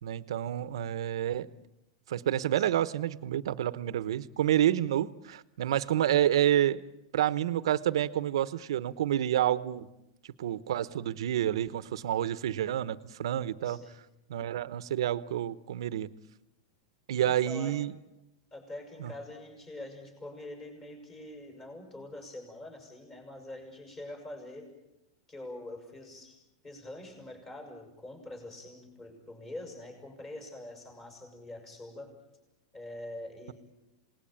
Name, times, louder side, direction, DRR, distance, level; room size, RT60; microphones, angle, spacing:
voice 1, 0.0-1.5 2.1-6.8 7.1-9.9 10.4-13.8 14.3-16.1 17.1-17.9 19.0-19.1, right 11 dB, 80° right, 16 dB, 1.1 m, -29 dB
voice 2, 13.6-14.0 17.2-17.8 18.5-24.7 25.3-26.4 26.6-32.1 32.7-33.5, left 1 dB, 15° left, 3 dB, 6.5 m, -44 dB
27.5 x 19.5 x 9.1 m, 0.91 s
supercardioid pair, 160°, 3 cm